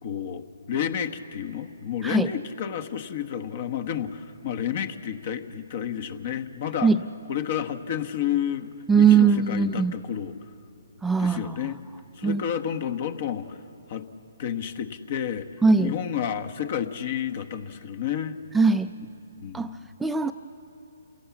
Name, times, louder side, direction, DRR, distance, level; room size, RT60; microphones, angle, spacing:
voice 1, 0.0-6.9 7.3-10.3 11.2-11.8 12.2-13.6 13.9-14.1 14.4-15.5 15.8-18.4 19.4-19.9, left 9 dB, 50° left, 9 dB, 1.2 m, -30 dB
voice 2, 8.9-9.9 11.0-11.6 12.2-12.4 15.6-15.9 18.5-18.9 19.5-19.7 20.0-20.3, right 5 dB, 5° right, 8 dB, 0.4 m, -20 dB
28.0 x 17.0 x 7.2 m, 2.7 s
hypercardioid pair, 140°, 0 cm